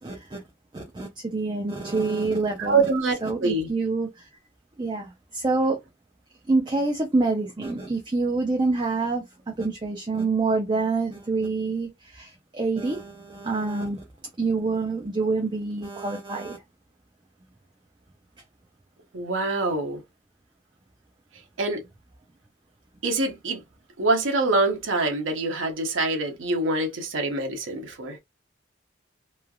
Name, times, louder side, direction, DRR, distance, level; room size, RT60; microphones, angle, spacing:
voice 1, 0.0-0.4 0.7-2.9 3.2-4.3 4.8-5.8 6.5-14.0 14.4-16.6, right 3 dB, 25° right, 0.5 m, -26 dB
voice 2, 2.6-3.2 3.4-3.7 19.1-20.0 21.6-21.8 23.0-23.6 24.0-28.2, right 3 dB, 75° right, 0.7 m, -25 dB
3.1 x 2.3 x 2.3 m
head